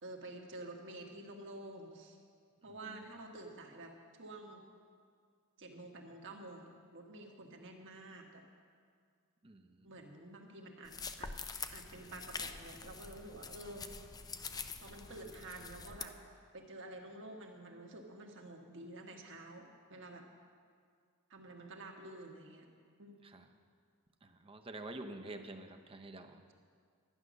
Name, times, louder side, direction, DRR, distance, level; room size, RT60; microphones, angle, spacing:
voice 1, 0.0-2.2 2.6-3.9 4.2-4.6 5.6-8.4 9.8-10.9 11.2-11.3 11.7-13.9 14.8-16.1 16.5-20.2 21.3-22.7 23.0-23.2, right 2 dB, 60° right, 2 dB, 1.5 m, -49 dB
voice 2, 2.6-3.1 9.4-10.1 23.2-23.5 24.2-26.4, right 2 dB, 25° right, 5 dB, 0.7 m, -49 dB
sound 1, 10.9-16.1, left 5 dB, 15° left, 0.4 m, -45 dB
12.0 x 9.7 x 6.3 m, 2.1 s
head